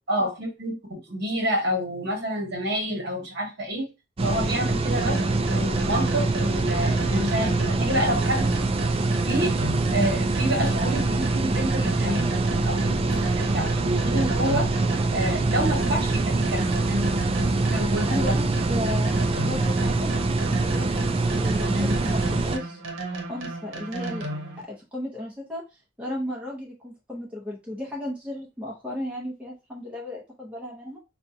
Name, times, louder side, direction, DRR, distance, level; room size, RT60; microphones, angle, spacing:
voice 1, 0.1-3.9 4.2-5.2 5.5-8.5 9.2-9.5 9.9-12.3 12.6-14.7 15.1-16.6 17.7-18.3, equal, 50° right, 2 dB, 1.2 m, -28 dB
sound 1, 4.2-22.6, right 3 dB, 25° right, 0.3 m, -24 dB
sound 2, 5.0-24.6, right 2 dB, 70° right, 0.9 m, -34 dB
voice 2, 18.0-20.1 20.4-22.8 23.3-24.3 24.6-25.6 26.0-31.0, left 1 dB, 5° right, -3 dB, 0.7 m, -34 dB
5.2 x 2.3 x 2.7 m, 0.27 s
head